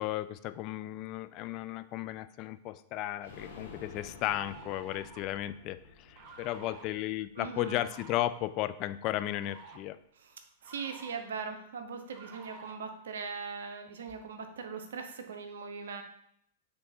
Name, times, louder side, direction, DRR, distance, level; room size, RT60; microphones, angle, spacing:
voice 1, 0.0-10.0, left 14 dB, 40° left, 12 dB, 0.4 m, -35 dB
sound 1, 3.2-8.8 9.2-9.3 9.6-9.7, left 3 dB, 70° left, 1.5 m, -52 dB
sound 2, 3.3-3.4 4.1-5.3 6.2-6.8 7.7-8.3 9.2-9.8 10.6-11.2 12.1-12.7, right 5 dB, 40° right, 0.8 m, -51 dB
voice 2, 7.4-7.8 10.2-10.4 10.6-16.0, right 5 dB, 70° right, 6 dB, 0.7 m, -40 dB
6.7 x 3.5 x 4.1 m, 0.71 s
figure-of-eight pair, 100°, 0 cm